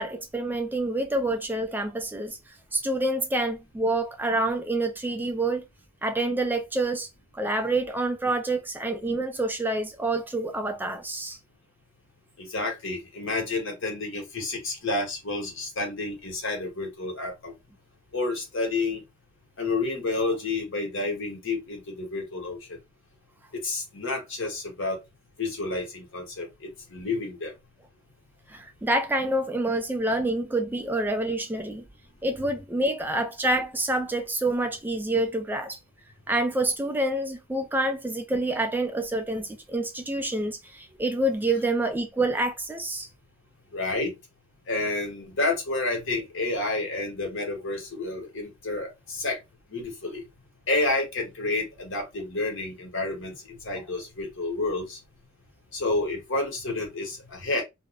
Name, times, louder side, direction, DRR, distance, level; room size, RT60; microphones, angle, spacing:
voice 1, 0.0-2.4 2.7-5.6 6.0-7.1 7.4-11.4 28.5-31.8 32.2-35.8 36.3-43.1, right 2 dB, 10° right, 0.3 m, -27 dB
voice 2, 12.4-17.5 18.1-19.0 19.6-22.8 23.6-25.0 25.4-27.5 43.7-44.1 44.7-49.4 49.7-50.2 50.7-55.0 55.7-57.6, left 2 dB, 65° left, 1.2 m, -30 dB
2.5 x 2.0 x 3.4 m
head